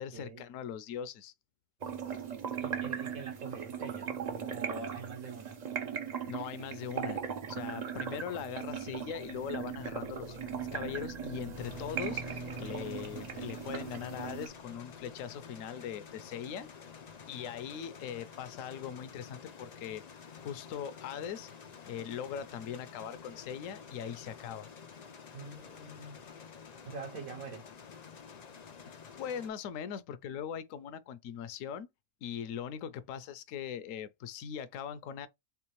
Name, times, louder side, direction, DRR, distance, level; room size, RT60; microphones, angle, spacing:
voice 1, 0.0-1.3 6.3-7.2 7.5-16.7 17.3-20.0 20.4-21.5 21.9-24.7 29.1-31.9 32.2-35.3, left 8 dB, 70° left, 0.9 m, -40 dB
sound 1, 1.8-14.5, right 7 dB, 50° right, 0.5 m, -39 dB
voice 2, 2.6-5.6 25.3-26.3 26.8-27.7, right 4 dB, 75° right, 1.3 m, -44 dB
sound 2, 8.1-15.5, equal, 35° right, 0.8 m, -49 dB
sound 3, 11.6-29.5, left 6 dB, 85° left, 0.3 m, -50 dB
3.5 x 3.1 x 3.0 m
omnidirectional pair, 1.5 m